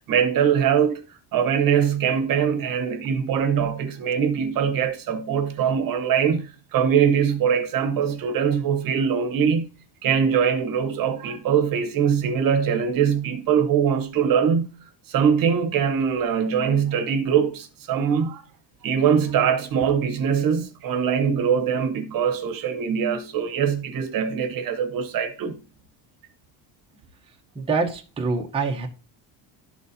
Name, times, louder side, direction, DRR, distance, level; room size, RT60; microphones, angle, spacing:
voice 1, 0.1-9.7 10.0-14.7 15.1-18.4 18.8-25.6, right 7 dB, 50° right, 1.0 m, -22 dB
voice 2, 27.5-28.9, right 4 dB, 10° right, 0.8 m, -25 dB
12.0 x 4.1 x 2.7 m
cardioid pair, 155°, 45 cm